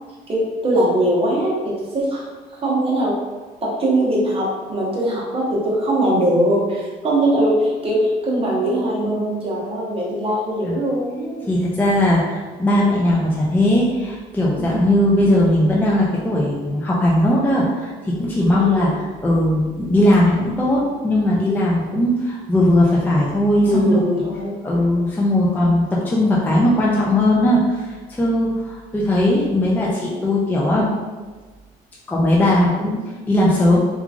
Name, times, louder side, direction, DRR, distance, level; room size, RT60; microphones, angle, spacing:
voice 1, 0.3-2.2 2.6-3.2 3.6-11.5 14.6-14.8 18.5-18.9 23.6-24.6, right 1 dB, 35° right, -4 dB, 0.9 m, -21 dB
voice 2, 11.5-24.0 24.6-30.9 32.1-33.8, left 1 dB, 10° left, -5 dB, 0.4 m, -18 dB
2.9 x 2.4 x 2.4 m, 1.4 s
cardioid pair, 110°, 17 cm